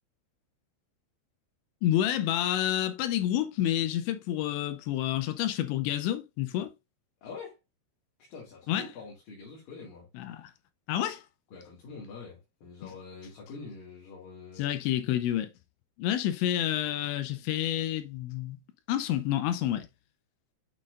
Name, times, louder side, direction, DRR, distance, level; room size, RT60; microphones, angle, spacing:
voice 1, 1.8-6.7 8.7-8.9 10.1-10.5 10.9-11.2 14.6-15.5 16.0-18.6 18.9-19.9, left 12 dB, 80° left, 2.7 m, -29 dB
voice 2, 7.2-7.6 8.2-10.1 11.5-14.7, left 4 dB, 55° left, 3.2 m, -45 dB
8.5 x 5.7 x 2.4 m
omnidirectional pair, 5.7 m